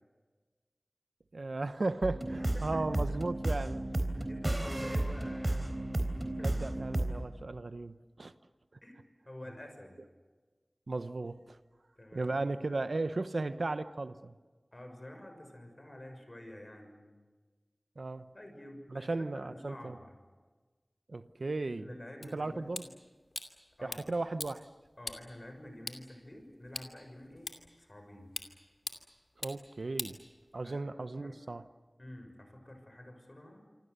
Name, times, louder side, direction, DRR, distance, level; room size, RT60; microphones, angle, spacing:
voice 1, 1.3-3.8 4.1-4.3 6.4-8.3 10.9-11.6 12.1-14.3 18.0-18.3 18.9-20.0 21.1-21.9 22.3-22.8 23.8-24.7 29.4-30.2 30.5-31.6, right 2 dB, 75° right, 0.9 m, -36 dB
sound 1, 2.0-7.2, right 1 dB, 40° right, 3.9 m, -33 dB
voice 2, 2.4-3.0 4.1-5.8 6.4-6.8 8.8-10.0 12.0-12.8 14.7-17.1 18.3-20.2 21.8-22.9 23.8-24.0 25.0-28.4 30.6-30.9 31.2-31.4 32.0-33.7, left 1 dB, 40° left, 6.4 m, -49 dB
sound 2, 22.2-30.8, left 2 dB, 75° left, 2.6 m, -46 dB
27.0 x 25.5 x 6.8 m
wide cardioid pair, 45°, 0 cm